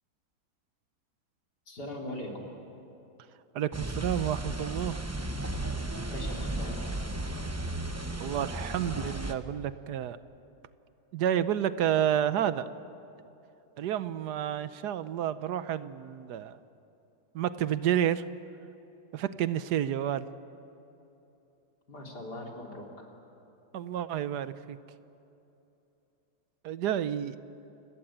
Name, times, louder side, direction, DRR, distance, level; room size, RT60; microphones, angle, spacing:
voice 1, 1.7-2.5 6.1-6.8 21.9-23.1, left 1 dB, 85° left, -1 dB, 4.1 m, -40 dB
voice 2, 3.5-5.0 8.2-10.2 11.1-12.7 13.8-16.6 17.3-18.3 19.1-20.3 23.7-24.8 26.6-27.4, right 10 dB, 80° right, 14 dB, 1.4 m, -30 dB
sound 1, 3.7-9.3, right 2 dB, 15° right, 0.8 m, -34 dB
29.5 x 17.0 x 8.8 m, 2.9 s
omnidirectional pair, 1.7 m